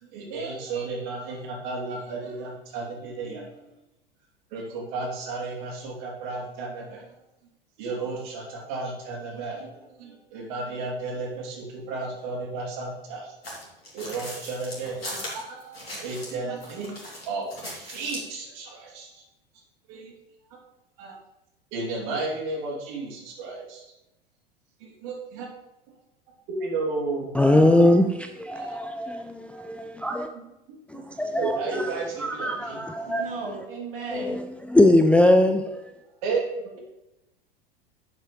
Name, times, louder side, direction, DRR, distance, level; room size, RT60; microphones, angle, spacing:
voice 1, 0.0-3.8 4.5-7.1 7.8-13.4 13.9-17.0 17.3-19.2 19.9-20.1 21.0-21.2 21.7-23.9 24.8-25.5 26.5-27.8 28.5-28.8 30.3-31.0 31.4-32.8 36.2-36.7, right 3 dB, 50° right, 3.0 m, -33 dB
sound 1, 13.4-16.3 16.6-18.3, left 1 dB, 80° left, 3.0 m, -38 dB
voice 2, 27.3-30.3 30.9-31.9 32.2-33.3 34.1-35.6, left 1 dB, 5° left, 0.4 m, -21 dB
voice 3, 33.1-34.4, right 4 dB, 70° right, 2.7 m, -35 dB
11.5 x 7.5 x 3.2 m
figure-of-eight pair, 85°, 30 cm